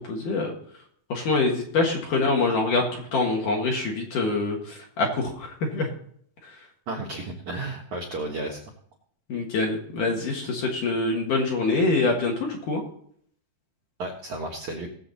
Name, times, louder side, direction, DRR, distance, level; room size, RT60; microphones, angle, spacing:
voice 1, 0.1-0.5 1.1-5.9 9.3-12.8, left 3 dB, 60° left, 0 dB, 2.6 m, -25 dB
voice 2, 6.9-8.6 14.0-14.9, right 2 dB, 65° right, 2 dB, 1.9 m, -33 dB
19.5 x 7.5 x 4.1 m, 0.64 s
omnidirectional pair, 5.2 m